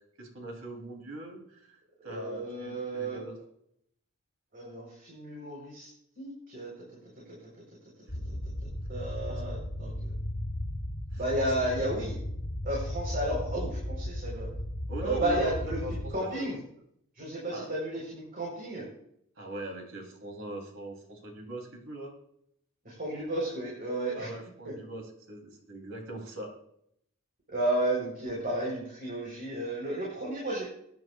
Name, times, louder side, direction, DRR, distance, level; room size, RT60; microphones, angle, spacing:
voice 1, 0.2-1.8 2.0-3.4 9.0-9.4 11.1-11.7 14.9-15.5 15.8-16.5 17.5-17.7 19.4-22.1 24.1-26.5, right 2 dB, 65° right, 2 dB, 3.1 m, -41 dB
voice 2, 2.0-3.2 4.5-5.9 6.2-6.7 8.2-8.4 8.9-10.2 11.2-12.1 12.6-14.5 15.0-16.6 17.2-18.9 22.8-24.3 24.6-24.7 27.5-30.6, right 1 dB, 45° right, -4 dB, 3.9 m, -32 dB
sound 1, 8.1-16.1, left 1 dB, 55° left, 4.2 m, -35 dB
22.5 x 10.5 x 2.3 m, 0.73 s
head